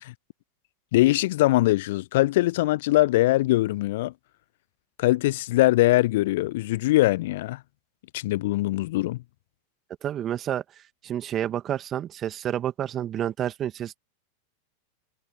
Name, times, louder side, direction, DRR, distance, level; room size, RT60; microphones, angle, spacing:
voice 1, 0.9-4.1 5.0-7.6 8.1-9.2, left 17 dB, 55° left, 0.4 m, -22 dB
voice 2, 10.0-10.6 11.0-14.0, right 10 dB, 30° right, 2.3 m, -29 dB
figure-of-eight pair, 90°, 0 cm